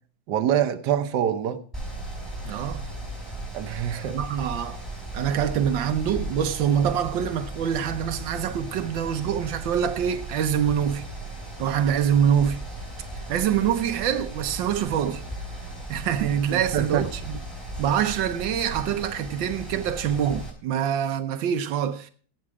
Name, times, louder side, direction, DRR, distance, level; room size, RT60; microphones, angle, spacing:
voice 1, 0.3-1.6 3.5-4.2 16.5-17.1, right 10 dB, 70° right, 1.5 m, -25 dB
Mechanical fan, 1.7-20.5, right 1 dB, ahead, 5.6 m, -36 dB
voice 2, 2.4-2.8 4.1-4.8 5.1-11.0 11.6-12.6 13.3-15.2 15.9-17.4 17.8-22.1, right 9 dB, 90° right, 1.5 m, -25 dB
17.0 x 7.2 x 4.8 m
omnidirectional pair, 2.0 m